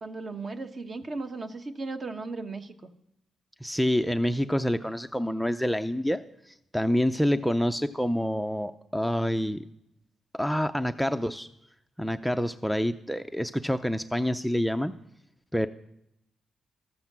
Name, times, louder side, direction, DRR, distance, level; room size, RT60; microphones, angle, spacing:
voice 1, 0.0-2.7, right 3 dB, 40° right, 7 dB, 1.1 m, -36 dB
voice 2, 3.6-9.6 10.3-11.5 12.0-14.9 15.5-15.7, equal, ahead, 8 dB, 0.5 m, -27 dB
13.5 x 7.9 x 7.4 m, 0.80 s
cardioid pair, 90°, 0 cm